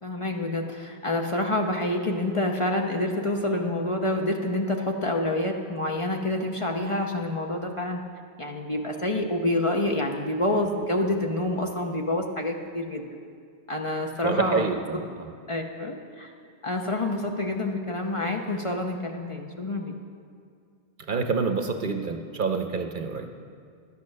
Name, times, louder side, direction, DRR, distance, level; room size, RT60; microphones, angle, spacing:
voice 1, 0.0-8.0 8.4-13.2 13.7-14.6 15.5-16.3 16.6-19.9, left 1 dB, 35° left, 1 dB, 0.7 m, -27 dB
voice 2, 14.2-15.3 21.1-23.3, right 4 dB, 55° right, 5 dB, 0.8 m, -27 dB
11.5 x 8.4 x 6.4 m, 2.2 s
omnidirectional pair, 1.1 m